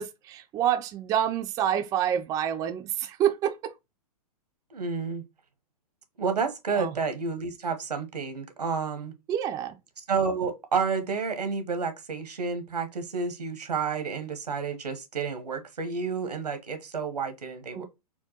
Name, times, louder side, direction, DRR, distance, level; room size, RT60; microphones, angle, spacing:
voice 1, 0.0-3.7 6.8-6.9 9.3-9.7 17.7-17.8, right 10 dB, 15° right, 0.3 m, -27 dB
voice 2, 4.7-5.2 6.2-9.1 10.1-17.9, right 5 dB, 90° right, 1.0 m, -30 dB
4.4 x 2.2 x 2.8 m
hypercardioid pair, 120°, 20 cm